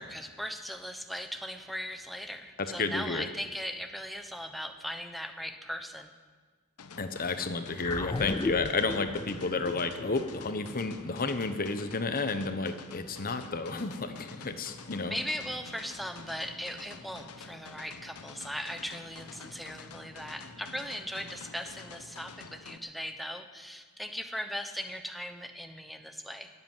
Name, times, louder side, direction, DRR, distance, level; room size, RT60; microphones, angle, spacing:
voice 1, 0.0-6.1 15.0-26.5, equal, ahead, 6 dB, 0.9 m, -38 dB
voice 2, 2.6-3.3 7.0-15.2, left 3 dB, 40° left, 9 dB, 1.0 m, -31 dB
sound 1, 6.8-22.8, left 4 dB, 85° left, 0.9 m, -48 dB
sound 2, 7.8-12.4, left 3 dB, 20° left, 0.4 m, -37 dB
20.5 x 8.0 x 7.4 m, 1.5 s
head